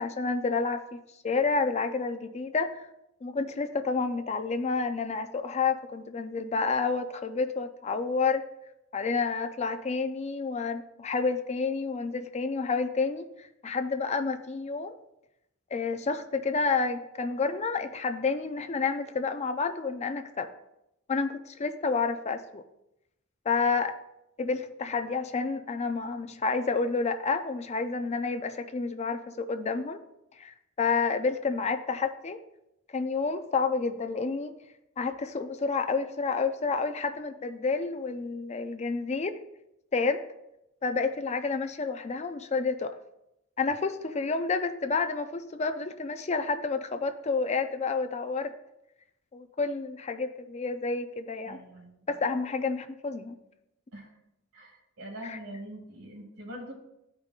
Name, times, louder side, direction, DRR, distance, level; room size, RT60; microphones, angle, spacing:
voice 1, 0.0-2.9 3.2-8.4 8.9-14.9 15.7-20.5 21.1-22.6 23.5-23.9 24.4-30.0 30.4-32.4 32.9-34.5 35.0-39.4 39.9-40.2 40.8-42.9 43.6-48.5 49.3-51.6 52.1-53.4 55.2-55.4, left 4 dB, 30° left, 8 dB, 0.4 m, -29 dB
voice 2, 51.5-52.1 53.9-54.1 54.5-56.7, equal, 75° right, -1 dB, 2.1 m, -43 dB
13.5 x 5.2 x 2.4 m, 0.85 s
head